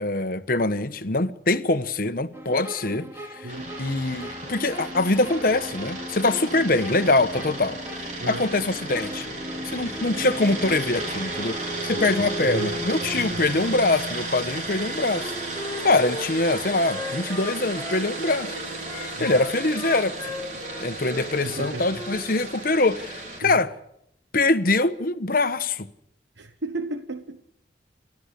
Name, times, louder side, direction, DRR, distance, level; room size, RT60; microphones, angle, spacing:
voice 1, 0.0-3.5 3.8-7.8 8.3-9.3 9.6-11.6 11.8-15.3 15.8-18.5 19.2-20.3 20.8-23.7 24.3-25.9, left 2 dB, 55° left, 1.2 m, -23 dB
sound 1, 2.3-13.7, right 1 dB, 15° right, 3.1 m, -37 dB
voice 2, 3.4-3.7 8.2-8.5 11.9-13.5 19.1-19.4 21.4-22.0 23.4-23.6 26.4-27.4, right 2 dB, 85° right, 1.3 m, -35 dB
sound 2, 3.5-23.4, right 2 dB, 45° right, 4.7 m, -34 dB
Wind instrument woodwind instrument, 15.2-18.4 18.8-22.2, left 2 dB, 10° left, 3.9 m, -37 dB
30.0 x 13.5 x 8.4 m
head